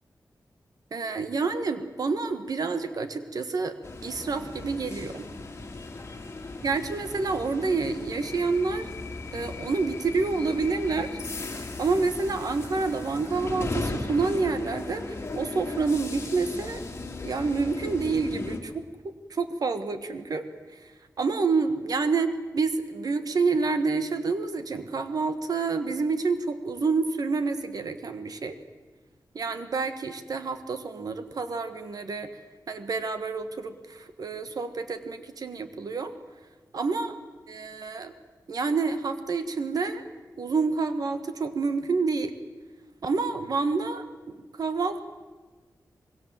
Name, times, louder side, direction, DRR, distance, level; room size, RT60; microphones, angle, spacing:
voice 1, 0.9-3.8 4.0-5.3 6.6-8.9 9.3-11.2 11.8-16.8 17.2-20.4 20.8-20.9 21.2-28.6 29.3-32.3 32.7-36.1 36.7-37.1 37.5-38.1 38.5-40.0 40.4-42.3 43.0-45.0, right 4 dB, 60° right, 9 dB, 1.5 m, -28 dB
sound 1, 3.8-18.6, left 3 dB, 35° left, 2.5 m, -36 dB
25.5 x 21.5 x 7.6 m, 1.3 s
wide cardioid pair, 170°, 7 cm